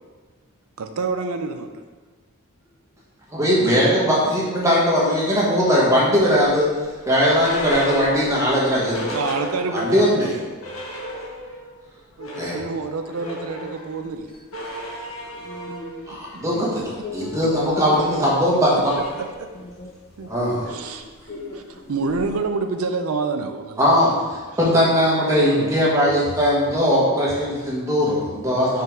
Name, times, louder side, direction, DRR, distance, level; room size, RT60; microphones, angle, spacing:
voice 1, 0.8-1.7 9.1-10.4 12.2-14.3 17.2-17.3 20.2-20.3 20.7-21.0 21.5-23.8 25.6-25.7, right 4 dB, 75° right, 7 dB, 0.5 m, -27 dB
voice 2, 3.3-6.7 7.0-9.2 9.7-10.3 12.4-12.5 16.1-16.8 17.1-19.0 20.3-20.7 23.8-28.8, equal, 15° right, -6 dB, 1.3 m, -19 dB
sound 1, 6.4-10.0 10.3-10.4 10.6-11.7 12.0-22.5, equal, 75° left, 1.1 m, -36 dB
voice 3, 13.2-13.7 15.2-16.2 17.0-17.6 19.6-19.9 20.4-21.0 21.3-22.0, left 3 dB, 45° left, 1 dB, 0.6 m, -39 dB
5.5 x 3.9 x 4.6 m, 1.4 s
head